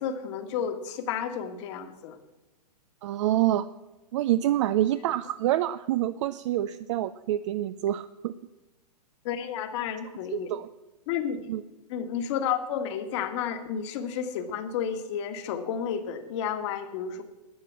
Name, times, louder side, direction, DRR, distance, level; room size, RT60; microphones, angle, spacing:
voice 1, 0.0-2.2 9.2-10.5 11.1-11.4 11.9-17.2, left 8 dB, 45° left, 8 dB, 1.7 m, -31 dB
voice 2, 3.0-3.7 4.1-8.3 10.3-10.7 11.5-11.6, right 13 dB, 45° right, 13 dB, 0.5 m, -27 dB
12.0 x 8.2 x 7.3 m, 1.1 s
hypercardioid pair, 130°, 21 cm